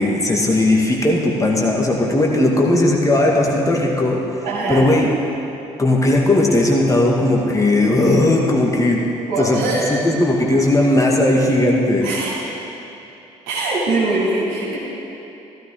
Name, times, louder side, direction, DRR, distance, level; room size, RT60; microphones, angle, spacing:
voice 1, 0.0-4.2 4.7-5.1 5.8-9.1 9.4-9.6 9.9-12.1, left 1 dB, 20° left, -1 dB, 2.2 m, -17 dB
voice 2, 4.4-4.9 9.3-9.9 12.0-12.4 13.5-14.8, right 2 dB, 65° right, -5 dB, 3.1 m, -22 dB
16.0 x 13.0 x 3.8 m, 2.9 s
figure-of-eight pair, 45°, 16 cm